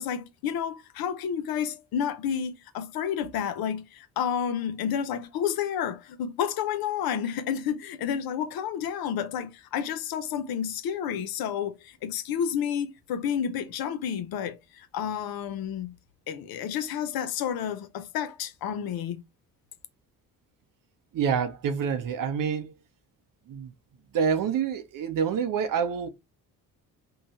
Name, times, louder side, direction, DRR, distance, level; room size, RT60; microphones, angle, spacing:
voice 1, 0.0-15.9 16.3-19.2, left 8 dB, 55° left, 0.6 m, -30 dB
voice 2, 21.1-22.7 23.5-23.7 24.1-26.1, right 7 dB, 50° right, 0.7 m, -27 dB
2.8 x 2.2 x 2.9 m
hypercardioid pair, 50°, 44 cm